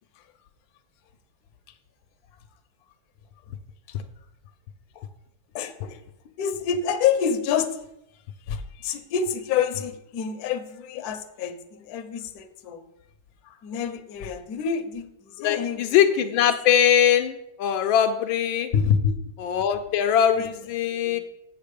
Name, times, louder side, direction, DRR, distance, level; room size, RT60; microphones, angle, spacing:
voice 1, 5.5-6.0 6.4-7.9 8.5-12.9 13.4-16.1 18.7-19.2 19.5-19.6 20.4-20.5 20.9-21.2, left 7 dB, 60° left, 7 dB, 1.1 m, -27 dB
voice 2, 15.4-18.7 19.4-21.2, left 9 dB, 75° left, 8 dB, 1.3 m, -21 dB
7.4 x 7.2 x 5.1 m, 0.84 s
omnidirectional pair, 2.2 m